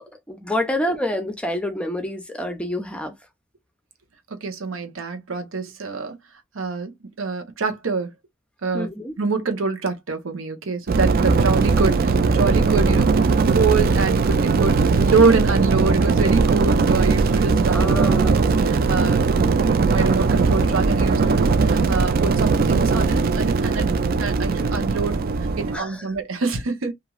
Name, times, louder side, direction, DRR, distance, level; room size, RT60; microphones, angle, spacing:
voice 1, 0.0-3.1 8.7-9.2 17.7-18.5 25.7-26.1, left 1 dB, 5° left, 0.5 m, -27 dB
voice 2, 4.4-6.1 6.5-6.9 7.2-8.1 8.6-8.9 9.2-13.1 13.5-23.9 24.2-25.2 25.6-26.9, right 4 dB, 90° right, 0.8 m, -25 dB
sound 1, 10.9-25.8, right 4 dB, 45° right, 0.3 m, -19 dB
3.0 x 2.4 x 2.3 m
head